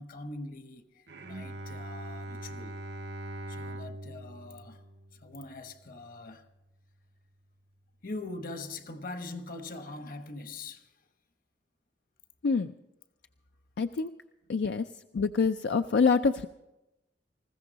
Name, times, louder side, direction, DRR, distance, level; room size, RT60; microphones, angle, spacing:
voice 1, 0.0-2.8 3.5-4.8 5.1-6.5 8.0-11.1 14.4-14.5, left 2 dB, 50° left, 1.1 m, -42 dB
Bowed string instrument, 1.1-6.3, right 1 dB, 70° right, 0.9 m, -42 dB
voice 2, 13.8-14.1 14.5-14.9 15.1-16.5, left 5 dB, 70° left, 0.4 m, -26 dB
20.0 x 15.0 x 4.0 m
head